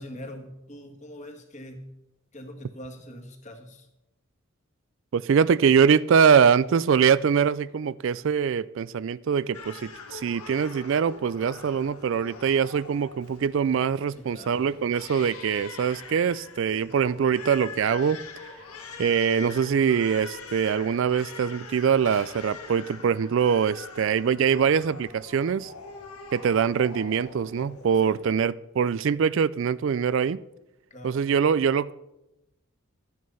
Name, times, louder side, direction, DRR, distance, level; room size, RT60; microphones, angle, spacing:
voice 1, 0.0-1.9 2.3-3.9 14.3-14.6 28.0-28.2 30.9-31.2, equal, 30° left, 1.8 m, -42 dB
voice 2, 5.1-18.2 19.0-25.7 26.3-30.4 31.0-31.9, right 7 dB, 60° right, 0.3 m, -23 dB
Crying sobbing, 9.5-28.3, left 4 dB, 85° left, 1.9 m, -43 dB
12.5 x 9.4 x 5.5 m
head